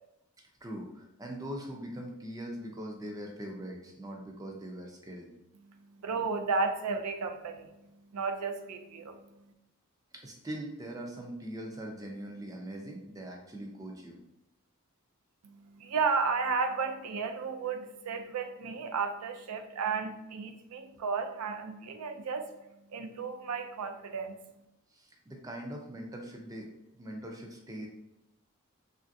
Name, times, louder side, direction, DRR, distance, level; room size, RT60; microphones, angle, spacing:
voice 1, 0.6-5.3 10.2-14.2 24.9-27.9, right 1 dB, 15° right, 1 dB, 0.3 m, -41 dB
voice 2, 5.6-9.5 15.4-24.6, right 4 dB, 90° right, 6 dB, 0.4 m, -34 dB
3.1 x 2.4 x 2.6 m, 0.89 s
head